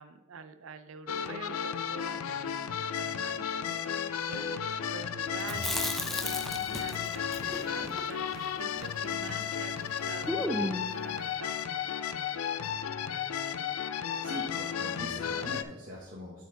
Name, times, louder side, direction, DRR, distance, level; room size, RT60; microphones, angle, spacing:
voice 1, 0.0-11.5, right 5 dB, 70° right, 11 dB, 0.5 m, -46 dB
sound 1, 1.1-15.6, left 8 dB, 90° left, 0.4 m, -34 dB
Chewing mastication, 5.4-9.6 9.8-9.9 10.3-11.0, equal, ahead, 0.4 m, -35 dB
voice 2, 14.2-16.4, equal, 40° right, -5 dB, 1.2 m, -42 dB
9.2 x 4.6 x 3.9 m, 1.1 s
head